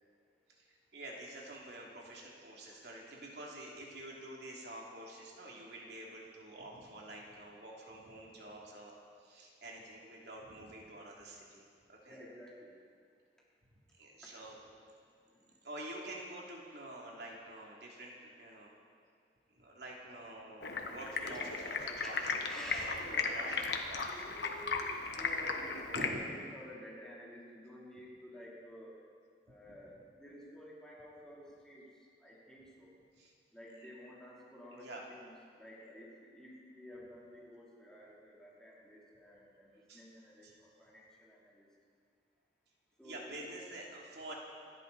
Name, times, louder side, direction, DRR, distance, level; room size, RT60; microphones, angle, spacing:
voice 1, 0.5-12.2 14.0-14.6 15.6-18.7 19.5-22.2 22.5-24.4 25.9-26.2 29.6-29.8 33.2-33.3 33.8-33.9 34.7-35.0 39.9-40.0 40.4-40.6 43.0-44.4, right 1 dB, 70° right, -3 dB, 2.9 m, -48 dB
voice 2, 12.1-12.7 15.3-15.5 22.4-23.6 24.0-29.0 29.5-31.9 32.2-32.9 33.5-35.3 35.6-41.7 43.0-43.5, equal, 5° left, -6 dB, 3.4 m, -51 dB
Stream, 20.6-26.1, left 4 dB, 75° left, 1.4 m, -36 dB
27.5 x 11.5 x 4.2 m, 2.1 s
head